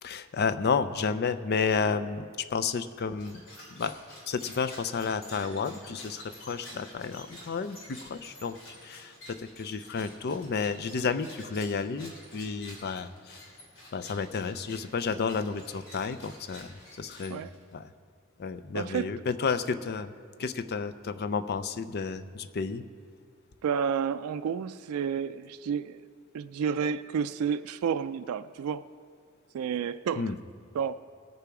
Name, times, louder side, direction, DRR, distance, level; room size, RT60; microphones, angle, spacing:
voice 1, 0.0-3.4 3.7-3.9 4.3-8.6 8.8-13.4 13.9-17.4 17.7-17.9 18.4-20.1 20.4-22.8 30.2-30.4, left 5 dB, 50° left, 12 dB, 0.5 m, -31 dB
sound 1, 3.1-17.7, left 1 dB, 65° left, 3.5 m, -50 dB
voice 2, 18.7-19.1 23.6-26.0 26.3-28.8 29.5-30.3 30.7-30.9, right 7 dB, 85° right, 11 dB, 0.3 m, -30 dB
19.5 x 6.8 x 4.8 m, 2.2 s
head